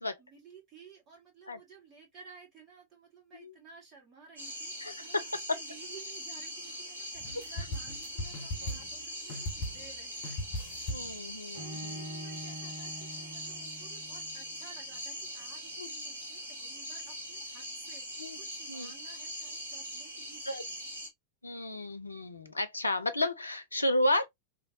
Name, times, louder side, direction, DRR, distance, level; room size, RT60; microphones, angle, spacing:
voice 1, 0.0-10.4 11.0-11.2 11.5-20.7, right 5 dB, 30° right, 1.6 m, -55 dB
sound 1, 4.4-21.1, equal, 80° right, 1.0 m, -42 dB
voice 2, 4.8-5.2 8.6-8.8 10.9-12.1 15.8-15.9 18.2-18.4 18.7-18.9 20.5-20.6 21.4-24.3, left 1 dB, 80° left, 0.5 m, -32 dB
sound 2, 7.1-9.0 9.3-10.0 10.2-11.2, left 1 dB, 40° left, 0.9 m, -38 dB
Bowed string instrument, 11.5-14.5, equal, 50° right, 1.2 m, -45 dB
3.2 x 2.6 x 2.7 m
figure-of-eight pair, 90°, 0 cm